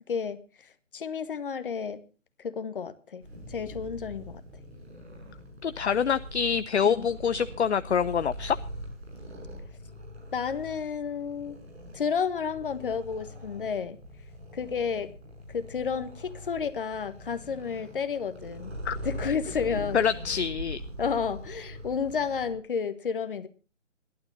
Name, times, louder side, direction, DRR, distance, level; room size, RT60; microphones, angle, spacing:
voice 1, 0.1-2.0 2.4-3.2 3.5-4.4 6.8-7.1 10.3-11.6 11.9-14.0 14.5-15.1 15.5-18.8 19.0-20.0 21.0-23.5, left 6 dB, 45° left, 1.5 m, -31 dB
Purr, 3.2-22.5, equal, 60° right, 7.1 m, -42 dB
voice 2, 5.6-8.6 18.8-19.0 19.9-20.8, left 7 dB, 65° left, 0.7 m, -26 dB
26.0 x 12.0 x 2.7 m
figure-of-eight pair, 150°, 37 cm